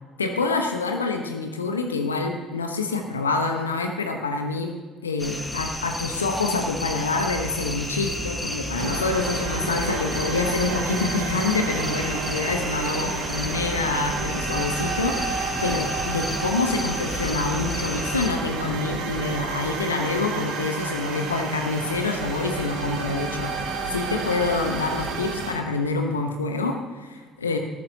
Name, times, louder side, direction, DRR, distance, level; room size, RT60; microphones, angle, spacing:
voice 1, 0.2-4.7 5.0-27.6, left 3 dB, 85° left, 4 dB, 1.0 m, -26 dB
sound 1, 5.2-18.3, left 1 dB, 5° left, 1.4 m, -32 dB
sound 2, 8.8-25.5, right 4 dB, 65° right, 1.4 m, -31 dB
14.0 x 11.5 x 2.8 m, 1.4 s
figure-of-eight pair, 55°, 0 cm